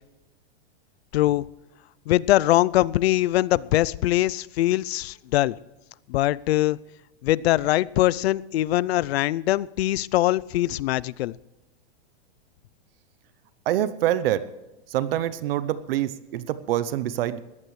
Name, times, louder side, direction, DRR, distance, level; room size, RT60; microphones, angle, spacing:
voice 1, 1.1-1.5 2.1-5.6 6.1-6.8 7.2-11.4, left 15 dB, 65° left, 21 dB, 0.6 m, -22 dB
voice 2, 13.7-14.5 14.9-17.4, right 12 dB, 55° right, 15 dB, 0.9 m, -25 dB
20.5 x 15.0 x 3.2 m, 1.0 s
supercardioid pair, 165°, 33 cm